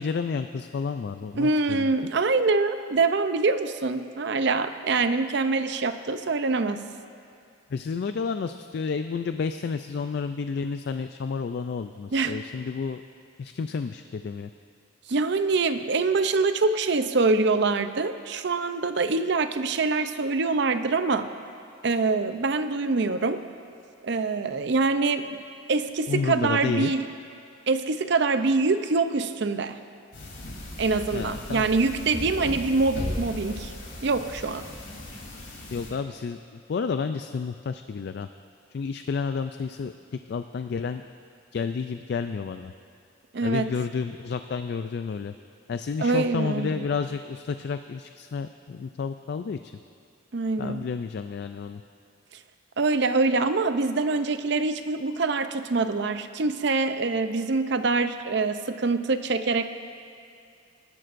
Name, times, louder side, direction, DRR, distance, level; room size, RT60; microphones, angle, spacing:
voice 1, 0.0-1.9 7.7-13.0 13.4-14.5 26.1-26.9 31.1-31.7 35.7-38.3 38.7-39.9 40.3-41.0 41.5-42.7 43.4-45.3 45.7-49.7 50.6-51.8, left 5 dB, 55° left, 9 dB, 0.3 m, -30 dB
voice 2, 1.4-6.9 12.1-12.4 15.1-21.3 21.8-23.4 24.0-25.4 25.7-27.0 27.7-29.8 30.8-33.7 34.0-34.7 43.3-43.7 46.0-46.8 50.3-50.9 52.8-59.7, right 3 dB, 60° right, 10 dB, 0.6 m, -25 dB
sound 1, 30.1-35.9, left 1 dB, 85° left, 3.3 m, -37 dB
23.5 x 12.0 x 2.6 m, 2.5 s
head